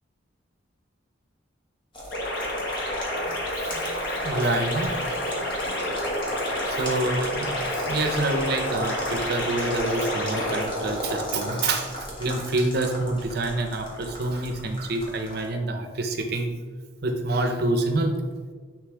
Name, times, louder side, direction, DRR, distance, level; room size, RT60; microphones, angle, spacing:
sound 1, 1.9-15.4, equal, 25° left, 1.4 m, -34 dB
sound 2, 2.1-10.6, left 1 dB, 55° left, 1.0 m, -30 dB
voice 1, 3.2-5.0 5.4-5.9 6.7-16.5 17.0-18.1, right 2 dB, 55° right, 5 dB, 0.7 m, -27 dB
9.7 x 3.3 x 3.4 m, 1.5 s
head